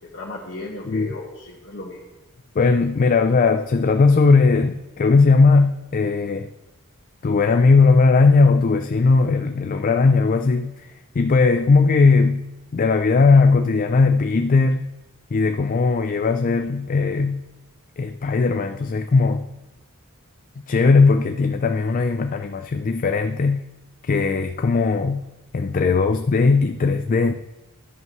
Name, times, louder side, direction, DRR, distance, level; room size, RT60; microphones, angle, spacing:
voice 1, 0.0-2.0, left 2 dB, 55° left, -5 dB, 1.6 m, -35 dB
voice 2, 2.6-6.5 7.2-10.9 11.2-12.4 12.7-14.9 15.3-17.4 18.0-19.5 20.7-23.6 24.1-25.2 25.5-27.3, left 4 dB, 40° left, 7 dB, 0.4 m, -18 dB
12.0 x 10.5 x 3.1 m, 1.0 s
head